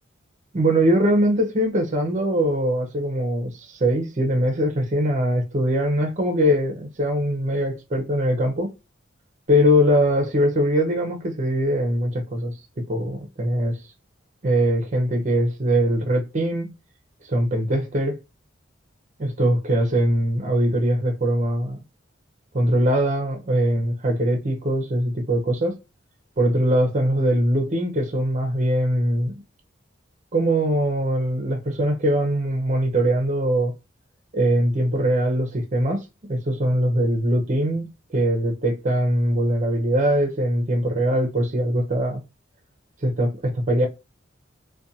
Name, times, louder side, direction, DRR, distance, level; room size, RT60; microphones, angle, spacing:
voice 1, 0.5-8.7 9.5-13.8 14.4-16.7 17.2-18.2 19.2-21.8 22.5-25.8 26.4-29.4 30.3-33.7 34.3-42.2 43.0-43.9, equal, 40° right, 0.6 m, -22 dB
2.5 x 2.2 x 2.7 m
head